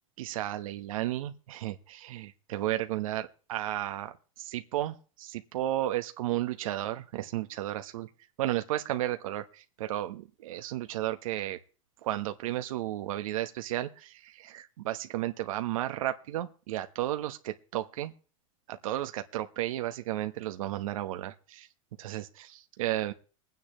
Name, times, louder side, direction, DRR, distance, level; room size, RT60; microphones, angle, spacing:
voice 1, 0.2-8.1 8.4-11.6 12.0-18.1 18.7-21.7 22.0-23.1, right 14 dB, 80° right, 8 dB, 1.2 m, -33 dB
22.5 x 9.5 x 3.0 m, 0.37 s
supercardioid pair, 140°, 17 cm